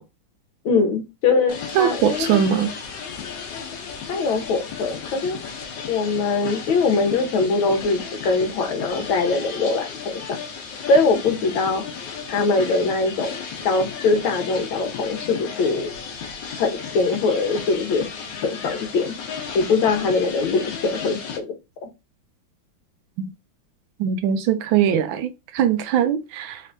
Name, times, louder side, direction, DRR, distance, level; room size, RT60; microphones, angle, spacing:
voice 1, 0.6-2.4 4.1-5.4 5.9-10.2 10.9-11.8 12.3-13.3 13.6-15.9 16.6-18.1 18.4-19.1 19.5-21.5 21.8-21.9, left 3 dB, 85° left, 1.6 m, -22 dB
sound 1, 1.5-21.4, left 6 dB, 70° left, 1.5 m, -34 dB
voice 2, 1.7-2.7 23.2-23.3 24.0-26.6, right 9 dB, 80° right, 1.4 m, -21 dB
4.2 x 3.2 x 2.6 m
omnidirectional pair, 2.2 m